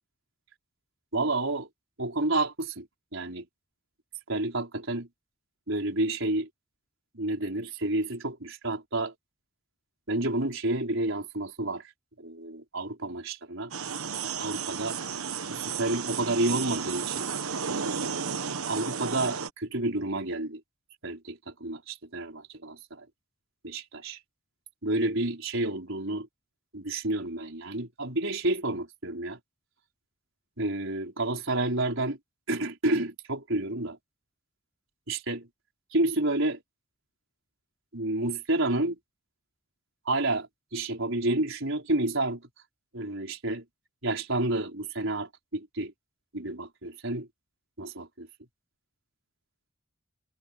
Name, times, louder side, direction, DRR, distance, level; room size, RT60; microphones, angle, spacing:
voice 1, 1.1-1.7 2.0-2.9 3.1-3.5 4.3-5.1 5.7-6.5 7.1-9.1 10.1-11.8 12.2-13.7 14.2-15.0 15.8-17.3 18.7-20.6 21.0-23.1 23.6-24.2 24.8-26.2 26.7-29.4 30.6-32.2 32.5-34.0 35.1-35.5 35.9-36.6 37.9-39.0 40.1-40.5 40.7-42.4 42.9-43.6 44.0-45.9 46.3-47.3 47.8-48.3, right 2 dB, 60° right, 5.4 m, -30 dB
sound 1, 13.7-19.5, right 6 dB, 75° right, 1.2 m, -33 dB
head